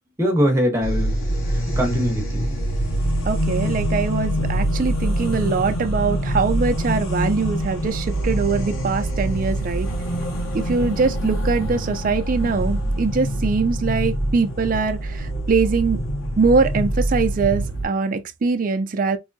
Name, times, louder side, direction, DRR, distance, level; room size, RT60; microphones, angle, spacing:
voice 1, 0.2-1.1 1.5-2.6, equal, 15° right, 1.0 m, -22 dB
sound 1, 0.8-17.8, right 1 dB, 85° left, 1.7 m, -24 dB
voice 2, 3.3-9.9 10.5-16.0 16.4-19.2, right 4 dB, 40° right, 0.4 m, -22 dB
3.6 x 3.1 x 2.6 m
head